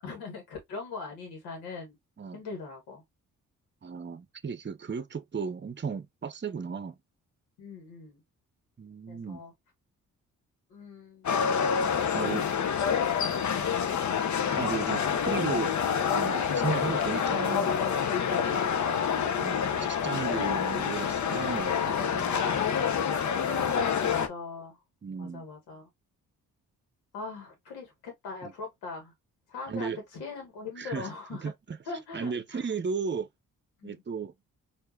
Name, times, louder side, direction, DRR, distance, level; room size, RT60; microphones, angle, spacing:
voice 1, 0.0-2.0 2.3-3.0 7.6-8.2 9.1-9.5 10.7-11.4 12.0-12.3 23.5-24.8 25.2-25.9 27.1-29.1 29.5-31.5 31.8-32.7 33.8-34.0, left 4 dB, 85° left, 1.4 m, -41 dB
voice 2, 3.8-7.0 8.8-9.4 12.1-12.4 14.6-15.7 16.1-17.7 19.3-22.4 25.0-25.4 28.4-28.5 29.7-30.0 30.8-31.1 31.4-31.8 32.1-33.3 33.8-34.3, right 5 dB, 30° right, 0.8 m, -35 dB
sound 1, 11.2-24.3, left 7 dB, 50° left, 0.8 m, -27 dB
4.6 x 2.7 x 2.6 m
supercardioid pair, 45°, 38 cm